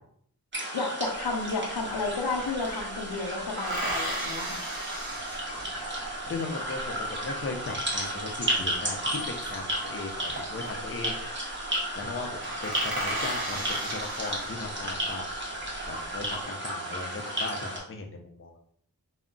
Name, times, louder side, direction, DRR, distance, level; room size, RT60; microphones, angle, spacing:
sound 1, 0.5-17.8, right 1 dB, 30° right, 0.9 m, -33 dB
voice 1, 0.7-4.6, left 3 dB, 90° left, 2 dB, 0.6 m, -32 dB
sound 2, 1.4-1.5 1.7-2.8 3.5-6.1 8.7-9.7 10.9-11.3 11.6-11.7 12.0-12.1 12.4-14.9 15.5-16.2, right 1 dB, 70° right, 0.9 m, -35 dB
voice 2, 6.0-9.2 9.5-11.2 12.0-15.3 15.6-18.6, left 3 dB, 35° left, 3 dB, 0.5 m, -37 dB
2.3 x 2.1 x 3.7 m, 0.64 s
wide cardioid pair, 50°, 38 cm